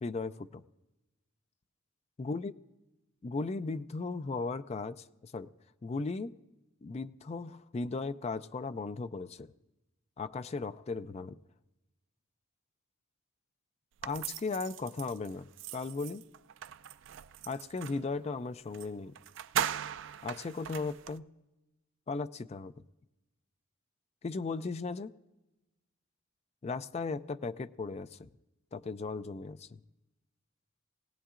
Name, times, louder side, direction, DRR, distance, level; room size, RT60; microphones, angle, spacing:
voice 1, 0.0-0.6 2.2-2.5 3.2-5.5 5.8-6.3 6.8-9.5 10.2-11.4 14.0-16.2 17.4-19.2 20.2-21.2 22.1-22.7 24.2-25.1 26.6-28.3 28.7-29.8, left 3 dB, 30° left, 13 dB, 0.3 m, -37 dB
sound 1, 14.0-18.1 18.7-18.9 19.2-21.2, right 9 dB, 60° right, 0.3 m, -39 dB
20.5 x 17.0 x 2.5 m, 1.0 s
head